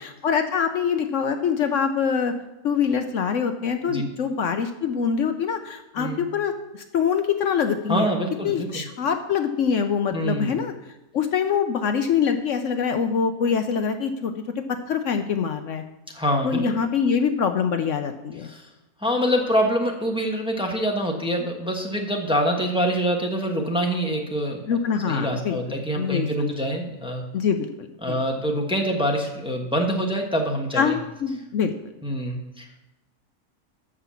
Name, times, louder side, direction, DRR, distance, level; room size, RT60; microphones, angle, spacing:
voice 1, 0.0-2.3 2.6-8.1 8.4-10.7 11.1-15.8 16.4-18.5 24.7-25.6 25.9-26.5 27.3-28.2 30.7-31.7, left 6 dB, 65° left, 7 dB, 1.0 m, -24 dB
voice 2, 7.9-8.8 10.1-10.5 16.1-16.6 18.4-18.6 19.0-24.6 25.0-27.2 28.0-30.9 32.0-32.8, equal, 5° right, 1 dB, 1.2 m, -25 dB
13.0 x 4.9 x 7.0 m, 0.97 s
omnidirectional pair, 1.5 m